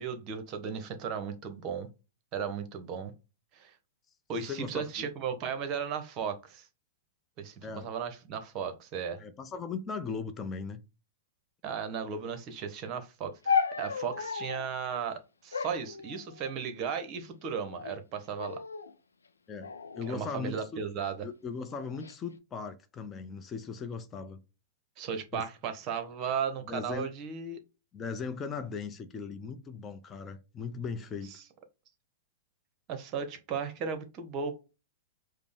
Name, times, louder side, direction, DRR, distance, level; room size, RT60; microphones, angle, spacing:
voice 1, 0.0-1.9 2.3-3.1 3.5-3.7 4.3-6.7 7.4-9.2 11.6-18.6 20.1-21.3 25.0-27.6 32.9-34.6, right 6 dB, 40° right, 0.9 m, -35 dB
voice 2, 4.5-5.1 7.6-7.9 9.2-10.8 19.5-20.8 21.2-24.4 25.3-25.4 26.7-27.0 27.9-31.4, left 5 dB, 25° left, 0.6 m, -38 dB
sound 1, 13.5-14.7 15.5-16.7 17.5-18.0 18.4-18.9 19.6-20.9 21.7-22.1, left 6 dB, 85° left, 0.4 m, -34 dB
5.0 x 2.1 x 3.4 m
hypercardioid pair, 105°, 0 cm